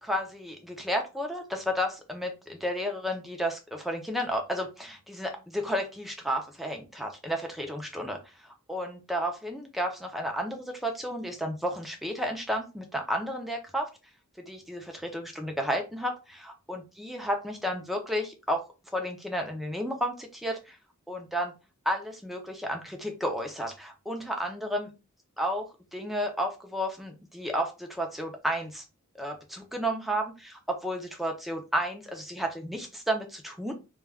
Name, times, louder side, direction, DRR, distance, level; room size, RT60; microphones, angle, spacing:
voice 1, 0.0-13.9 14.5-18.6 18.9-20.8 21.1-21.5 21.9-24.9 25.4-28.8 29.1-33.7, equal, ahead, 3 dB, 0.5 m, -32 dB
2.3 x 2.2 x 3.4 m, 0.29 s
head